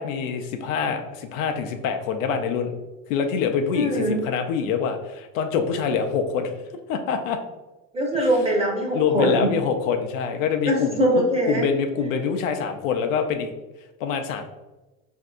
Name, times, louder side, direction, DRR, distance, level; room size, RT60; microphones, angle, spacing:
voice 1, 0.0-2.7 3.1-6.5 6.9-7.4 8.9-11.0 11.5-13.5 14.0-14.4, left 6 dB, 85° left, 6 dB, 0.6 m, -25 dB
voice 2, 3.7-4.2 7.9-9.5 10.6-11.6, right 1 dB, 15° right, -1 dB, 0.9 m, -22 dB
4.3 x 2.6 x 2.4 m, 1.1 s
supercardioid pair, 105°, 38 cm